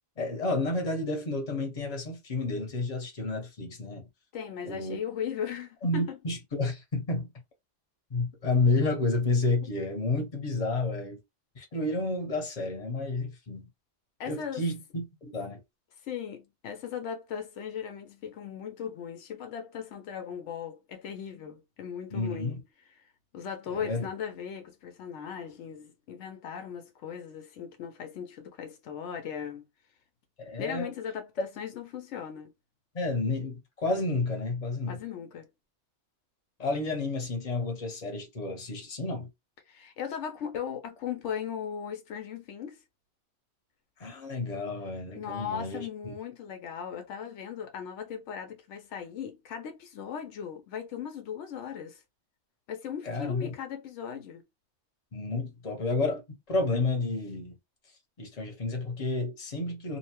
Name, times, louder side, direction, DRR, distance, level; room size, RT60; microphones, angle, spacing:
voice 1, 0.2-4.0 4.6-5.0 5.8-7.3 8.1-11.2 11.6-13.7 14.2-15.6 22.1-22.6 23.7-24.1 30.4-30.9 32.9-35.0 36.6-39.3 44.0-46.1 53.0-53.5 55.1-57.6 58.2-60.0, left 3 dB, 35° left, 1.0 m, -30 dB
voice 2, 4.3-6.2 14.2-14.6 16.0-22.6 23.3-29.6 30.6-32.5 34.9-35.5 39.7-42.8 45.1-52.0 52.7-54.5, left 8 dB, 85° left, 0.9 m, -38 dB
2.7 x 2.1 x 2.9 m
omnidirectional pair, 1.2 m